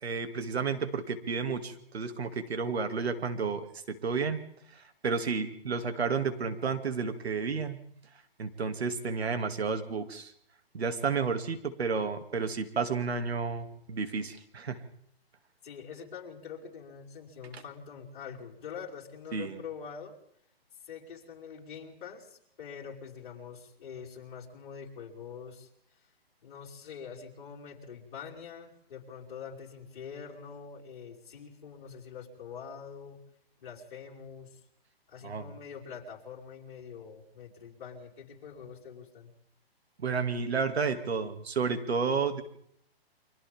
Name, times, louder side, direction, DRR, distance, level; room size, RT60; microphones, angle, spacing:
voice 1, 0.0-4.4 4.7-7.8 8.4-10.3 10.7-14.8 19.3-19.6 35.2-35.5 40.0-42.4, right 5 dB, 85° right, 8 dB, 2.6 m, -31 dB
voice 2, 15.6-20.1 20.9-25.7 26.4-33.2 33.6-34.6 35.1-39.3, left 6 dB, 50° left, -3 dB, 5.3 m, -45 dB
29.5 x 24.5 x 3.6 m, 0.71 s
hypercardioid pair, 155°, 31 cm